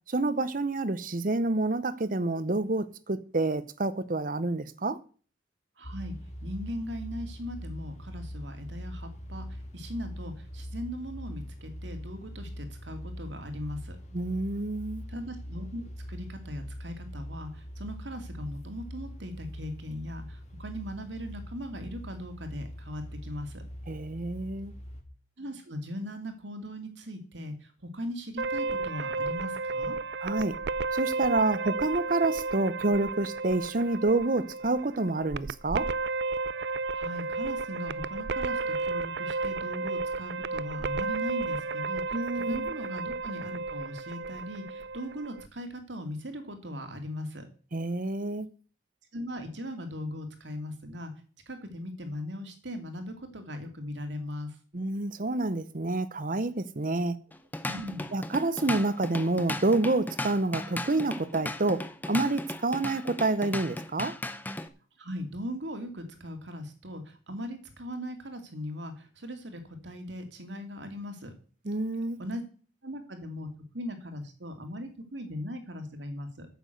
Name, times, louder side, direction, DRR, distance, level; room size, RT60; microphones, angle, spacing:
voice 1, 0.1-5.0 14.1-15.0 23.9-24.7 30.2-30.5 30.9-35.9 42.1-42.7 47.7-48.5 54.7-57.2 58.1-64.2 71.6-72.2, right 2 dB, 50° right, 0.8 m, -28 dB
sound 1, 5.8-25.0, equal, 40° left, 1.9 m, -42 dB
voice 2, 5.8-6.2 6.4-14.0 15.1-23.6 25.4-30.0 36.9-47.4 49.1-51.1 51.5-54.6 57.6-58.1 65.0-71.3 72.2-72.4 72.8-73.5 73.7-76.5, equal, 85° right, 2.4 m, -39 dB
sound 2, 28.4-45.5, right 3 dB, 65° right, 0.5 m, -33 dB
Drum kit / Drum, 57.3-64.7, left 1 dB, 10° left, 0.8 m, -36 dB
9.3 x 7.1 x 8.0 m
head